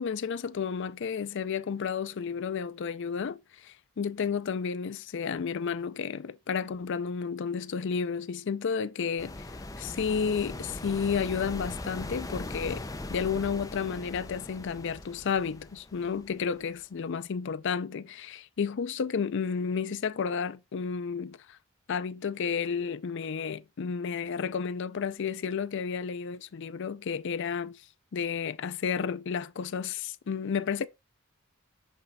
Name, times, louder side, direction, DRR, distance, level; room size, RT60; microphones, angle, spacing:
voice 1, 0.0-12.8 13.1-21.6 21.9-27.8 28.1-30.9, left 6 dB, 60° left, 0.4 m, -32 dB
sound 1, 9.2-16.8, left 2 dB, 15° left, 0.6 m, -40 dB
8.2 x 3.2 x 4.1 m
head